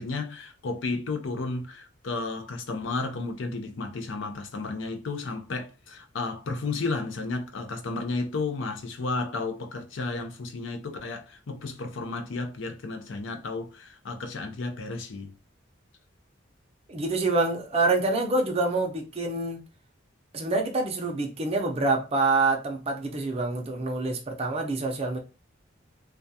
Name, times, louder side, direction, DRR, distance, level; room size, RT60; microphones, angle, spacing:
voice 1, 0.0-15.3, left 3 dB, 70° left, 0.5 m, -33 dB
voice 2, 16.9-19.6 20.3-25.2, right 3 dB, 30° right, 0.5 m, -26 dB
2.3 x 2.2 x 2.6 m
head